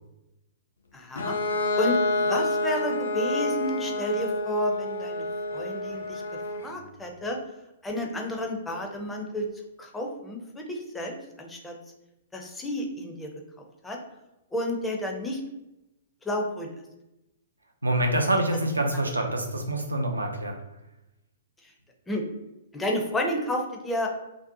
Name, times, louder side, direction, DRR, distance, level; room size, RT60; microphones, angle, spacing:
voice 1, 0.9-1.3 1.8-5.2 5.5-6.2 6.6-7.4 7.8-9.5 9.8-11.8 12.3-13.3 13.8-14.0 14.5-15.4 16.2-16.7 21.6-21.7 22.1-22.2 22.7-24.1, left 1 dB, 10° left, 1 dB, 0.4 m, -31 dB
Bowed string instrument, 1.2-6.8, left 2 dB, 65° left, 0.4 m, -28 dB
voice 2, 17.8-20.5, right 1 dB, 80° right, 3 dB, 0.4 m, -26 dB
2.6 x 2.0 x 2.6 m, 0.94 s
figure-of-eight pair, 115°, 0 cm